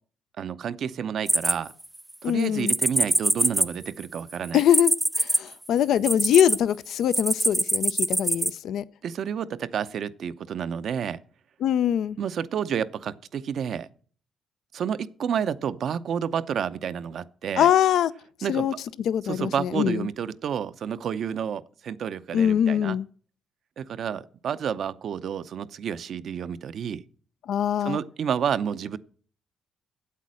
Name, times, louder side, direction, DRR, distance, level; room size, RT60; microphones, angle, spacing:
voice 1, 0.4-1.7 2.2-4.6 9.0-11.2 12.2-13.9 14.7-17.7 18.4-18.8 19.2-23.0 23.8-27.0 27.8-29.0, right 8 dB, 65° right, 0.6 m, -30 dB
sound 1, 1.3-2.1 2.7-6.6 7.1-8.5, right 1 dB, 10° right, 0.5 m, -23 dB
voice 2, 2.2-2.7 4.5-4.9 5.2-8.8 11.6-12.2 17.6-18.1 18.5-18.7 19.1-20.1 22.3-23.1 27.5-28.0, left 10 dB, 75° left, 0.5 m, -23 dB
8.4 x 8.3 x 6.3 m
cardioid pair, 90°, 0 cm